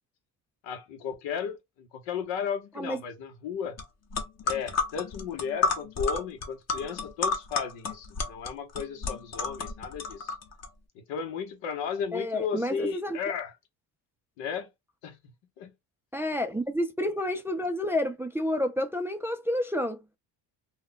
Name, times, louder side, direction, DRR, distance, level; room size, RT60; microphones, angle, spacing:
voice 1, 0.6-3.8 4.4-10.3 11.1-13.5 14.4-14.7 15.0-15.2 15.6-15.7, left 7 dB, 85° left, 1.0 m, -34 dB
sound 1, 3.8-3.9 4.1-10.7, left 4 dB, 35° left, 0.8 m, -31 dB
voice 2, 12.1-13.2 16.1-20.0, left 1 dB, 5° right, 0.4 m, -29 dB
2.4 x 2.2 x 3.7 m
cardioid pair, 90°, 44 cm